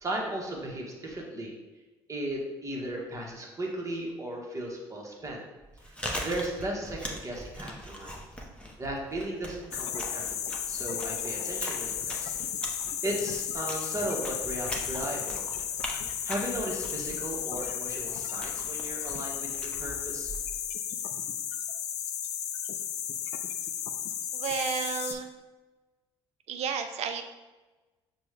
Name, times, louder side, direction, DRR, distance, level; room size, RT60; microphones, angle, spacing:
voice 1, 0.0-1.5 2.1-5.4 5.9-8.1 8.8-10.2 10.7-12.3 12.6-12.8 13.0-15.4 16.2-20.3, right 1 dB, 25° right, -1 dB, 1.1 m, -36 dB
Chewing mastication, 5.6-20.7, equal, 10° left, 0.8 m, -41 dB
sound 1, 9.7-25.1, left 9 dB, 60° left, 0.4 m, -34 dB
voice 2, 24.3-25.3 26.5-27.2, right 6 dB, 55° right, 7 dB, 0.5 m, -32 dB
5.9 x 2.2 x 3.3 m, 1.2 s
hypercardioid pair, 60°, 13 cm